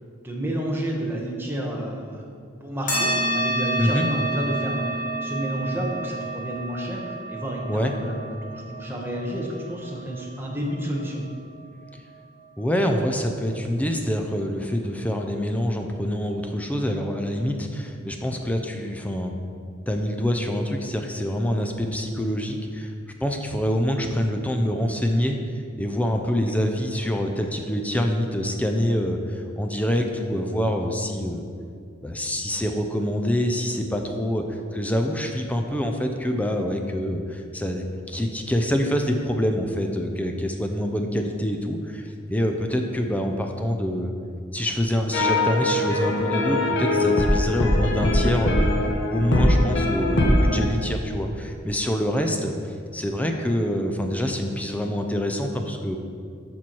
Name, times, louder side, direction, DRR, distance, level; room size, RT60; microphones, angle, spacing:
voice 1, 0.2-2.2 2.6-11.2 26.5-26.6, equal, 10° right, -2 dB, 1.2 m, -30 dB
sound 1, 2.9-11.8, right 1 dB, 45° left, 2.1 m, -30 dB
voice 2, 12.6-19.3 19.9-22.9 23.2-25.4 25.8-31.5 32.0-44.1 44.5-48.7 49.1-52.5 52.9-56.0, equal, 5° left, 4 dB, 0.6 m, -26 dB
sound 2, 45.1-50.7, left 1 dB, 60° left, 1.2 m, -21 dB
13.5 x 4.5 x 4.6 m, 2.2 s
head